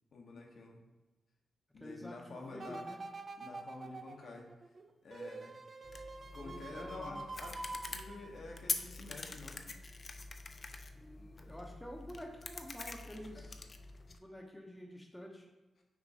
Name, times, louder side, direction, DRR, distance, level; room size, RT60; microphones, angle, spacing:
voice 1, 0.1-0.8 1.7-2.9 3.4-4.5 5.0-5.6 6.3-9.7 13.3-13.5 15.8-15.9, left 3 dB, 65° left, 0 dB, 0.9 m, -49 dB
voice 2, 1.8-3.0 6.4-7.2 10.9-13.5 14.1-15.5, equal, 10° left, 0 dB, 0.7 m, -49 dB
sound 1, 2.6-8.8 9.3-9.4, right 3 dB, 45° right, 0.3 m, -47 dB
sound 2, 5.8-14.2, left 3 dB, 45° left, 0.4 m, -45 dB
6.0 x 3.0 x 2.8 m, 1.1 s
cardioid pair, 75°, 0 cm